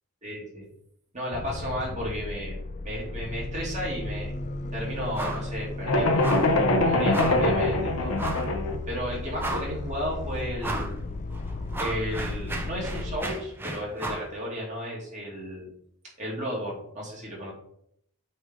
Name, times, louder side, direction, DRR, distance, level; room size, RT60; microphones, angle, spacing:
voice 1, 0.2-0.7 1.1-4.3 4.7-6.3 6.8-8.2 8.9-10.9 11.8-15.7 16.2-17.5, equal, 35° right, -4 dB, 2.4 m, -33 dB
sound 1, 1.3-13.2, left 2 dB, 35° left, 0.3 m, -35 dB
sound 2, 5.1-5.5 5.8-5.9 6.2-6.6 7.1-7.5 8.2-8.5 9.0-9.1 9.4-9.9 10.6-11.0 11.3-14.3, right 2 dB, 10° right, 0.6 m, -34 dB
sound 3, 5.9-8.8, left 2 dB, 75° left, 0.9 m, -23 dB
8.3 x 3.3 x 3.8 m, 0.71 s
head